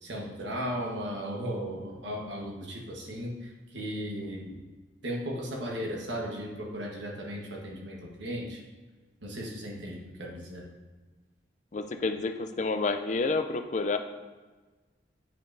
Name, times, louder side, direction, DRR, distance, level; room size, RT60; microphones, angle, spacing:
voice 1, 0.0-4.6 5.0-8.6 9.2-10.6, equal, 80° right, -1 dB, 1.3 m, -36 dB
voice 2, 11.7-14.0, left 3 dB, 40° left, 8 dB, 0.4 m, -29 dB
8.9 x 5.3 x 2.6 m, 1.3 s
head